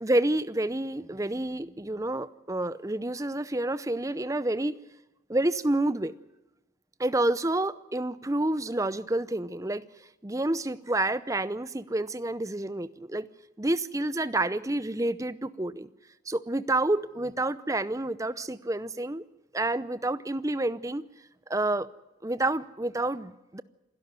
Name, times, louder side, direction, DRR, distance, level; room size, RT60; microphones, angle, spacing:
voice 1, 0.0-4.8 5.3-6.1 7.0-9.8 10.2-13.3 13.6-15.9 16.3-19.2 19.5-21.1 21.5-21.9 22.2-23.6, right 2 dB, 15° right, 16 dB, 0.6 m, -29 dB
27.0 x 12.5 x 9.5 m, 0.99 s
head